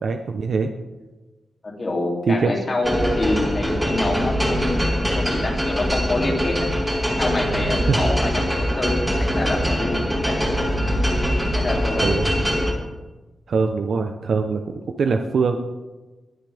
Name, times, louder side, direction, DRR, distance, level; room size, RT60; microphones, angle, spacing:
voice 1, 0.0-0.7 2.3-2.5 7.9-8.0 12.0-12.4 13.5-14.6 15.0-15.6, right 4 dB, 55° right, 6 dB, 0.8 m, -22 dB
voice 2, 1.6-6.7 7.2-9.1 9.3-10.3 11.5-12.2, left 2 dB, 30° left, -1 dB, 2.9 m, -26 dB
sound 1, 2.8-12.7, equal, 5° right, 2.1 m, -22 dB
20.5 x 9.7 x 3.5 m, 1.2 s
wide cardioid pair, 165°, 0 cm